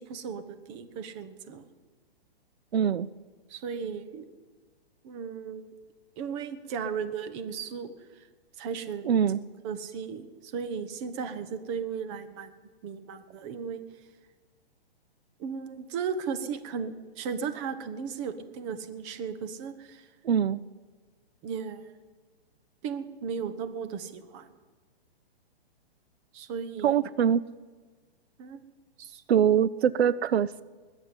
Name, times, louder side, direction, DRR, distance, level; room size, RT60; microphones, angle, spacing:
voice 1, 0.0-1.6 3.5-4.2 5.0-5.7 6.2-8.3 8.6-9.1 9.6-12.5 12.8-13.8 15.4-20.1 21.4-21.9 22.8-24.5 26.3-26.9 28.4-28.6 29.0-29.2, right 6 dB, 30° right, 10 dB, 1.1 m, -36 dB
voice 2, 2.7-3.1 9.0-9.4 20.2-20.6 26.8-27.4 29.3-30.6, right 8 dB, 85° right, 18 dB, 0.6 m, -23 dB
20.0 x 7.4 x 9.6 m, 1.4 s
hypercardioid pair, 150°, 31 cm